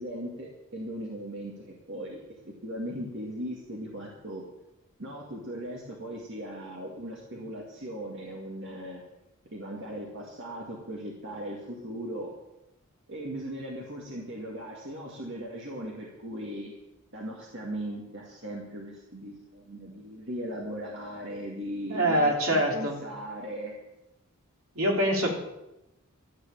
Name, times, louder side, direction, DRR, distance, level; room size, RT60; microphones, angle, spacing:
voice 1, 0.0-4.4 5.0-9.0 9.5-12.3 13.1-16.8 17.1-23.7 25.2-25.3, equal, 55° right, -2 dB, 2.1 m, -38 dB
voice 2, 21.9-23.0 24.7-25.3, right 1 dB, 70° right, 0 dB, 3.2 m, -24 dB
13.0 x 8.2 x 8.6 m, 0.94 s
head